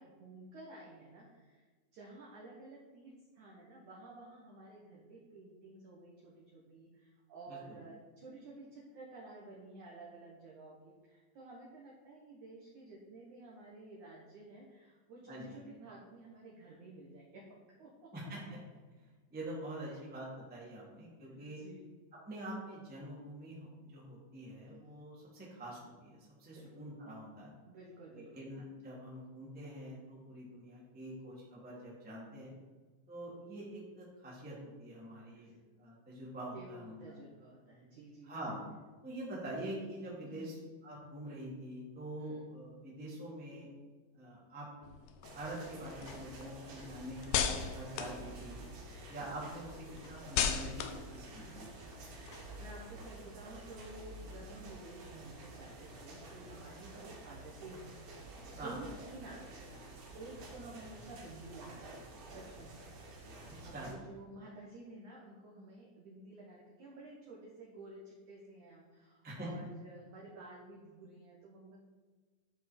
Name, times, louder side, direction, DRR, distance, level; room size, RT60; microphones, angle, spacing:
voice 1, 0.0-1.7 1.9-18.1 19.9-20.0 21.2-21.9 26.5-26.9 27.6-28.4 35.3-35.6 36.5-38.3 40.2-40.5 42.2-42.4 48.8-49.2 50.6-50.7 51.4-57.9 58.2-62.9 63.2-71.8, right 2 dB, 80° right, -4 dB, 1.7 m, -52 dB
voice 2, 19.0-21.6 22.2-27.5 28.1-32.5 33.1-35.5 35.8-36.9 38.2-38.6 39.0-40.5 40.8-43.7 44.1-44.7 45.3-47.4 47.7-48.6 49.1-51.7 58.6-58.8 63.5-63.9 69.2-69.5, right 1 dB, 5° right, -6 dB, 0.9 m, -45 dB
sound 1, 44.8-49.0 49.4-52.9, left 8 dB, 85° left, 2.5 m, -38 dB
sound 2, 45.2-63.9, right 2 dB, 60° right, 3.5 m, -50 dB
12.0 x 5.4 x 4.4 m, 1.4 s
omnidirectional pair, 5.5 m